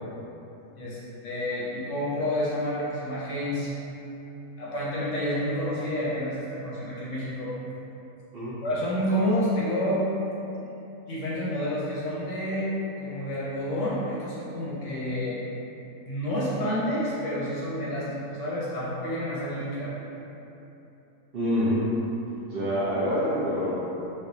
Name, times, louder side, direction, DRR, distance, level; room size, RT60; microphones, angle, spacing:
voice 1, 0.8-3.7 4.6-7.5 8.6-10.1 11.1-12.7 13.0-15.4 16.0-19.9, equal, 65° left, -7 dB, 0.9 m, -29 dB
voice 2, 21.3-21.8 22.5-23.7, equal, 55° right, -11 dB, 0.7 m, -26 dB
4.3 x 2.3 x 2.6 m, 3.0 s
omnidirectional pair, 1.6 m